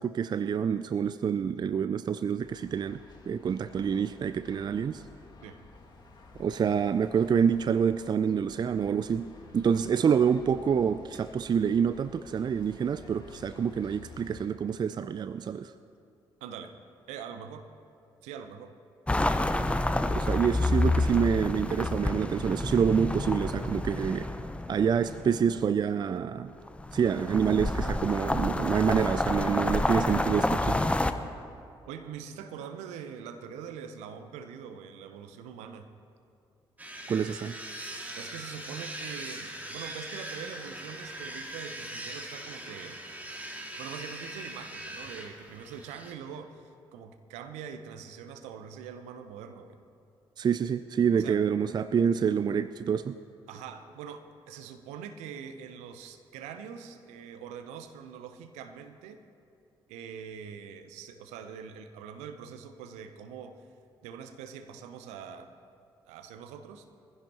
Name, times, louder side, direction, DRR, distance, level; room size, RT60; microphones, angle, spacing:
voice 1, 0.0-3.0 3.3-5.0 6.4-9.3 9.5-15.7 20.1-24.3 24.7-26.5 26.9-30.8 37.1-37.6 50.4-53.2, right 7 dB, 35° right, 13 dB, 0.4 m, -27 dB
sound 1, 2.4-14.4, left 3 dB, 40° left, 2.3 m, -52 dB
voice 2, 16.4-16.8 17.1-17.7 18.2-18.8 31.9-35.9 38.1-43.0 43.8-49.8 51.1-51.4 53.5-59.2 59.9-63.6 64.0-65.5 66.1-66.8, right 7 dB, 70° right, 8 dB, 0.9 m, -43 dB
sound 2, 19.1-25.5 26.7-31.1, left 2 dB, 10° left, 0.8 m, -29 dB
sound 3, 36.8-46.1, right 1 dB, 15° right, 2.3 m, -41 dB
22.0 x 15.5 x 3.0 m, 2.5 s
figure-of-eight pair, 40°, 12 cm